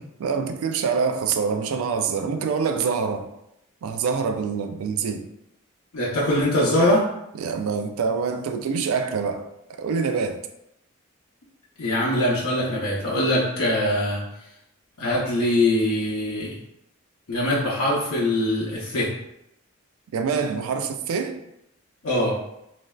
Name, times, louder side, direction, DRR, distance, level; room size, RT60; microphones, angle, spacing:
voice 1, 0.0-3.3 3.8-5.2 7.4-9.5 9.8-10.4 20.1-21.4, right 5 dB, 75° right, 7 dB, 0.3 m, -25 dB
voice 2, 5.9-7.0 11.8-14.2 15.0-16.5 17.3-19.1 22.0-22.3, left 1 dB, 85° left, -6 dB, 0.6 m, -22 dB
3.1 x 2.5 x 2.2 m, 0.83 s
head